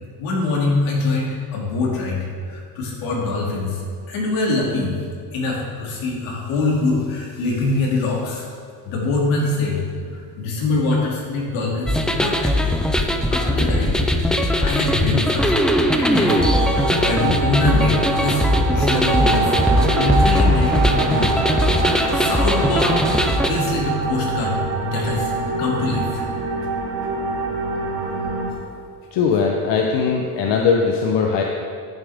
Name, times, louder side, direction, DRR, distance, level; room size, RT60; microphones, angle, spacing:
voice 1, 0.2-3.8 4.1-8.5 8.8-9.8 10.1-12.7 13.3-14.0 14.6-15.5 15.9-18.4 18.7-21.3 22.1-23.0 23.5-26.2, left 3 dB, 80° left, -3 dB, 3.0 m, -24 dB
sound 1, 11.9-23.5, left 1 dB, ahead, 0.4 m, -19 dB
sound 2, 16.3-28.5, right 3 dB, 85° right, 1.9 m, -24 dB
voice 2, 29.1-31.4, left 5 dB, 60° left, 1 dB, 1.0 m, -19 dB
14.5 x 7.6 x 3.6 m, 2.2 s
cardioid pair, 125°, 48 cm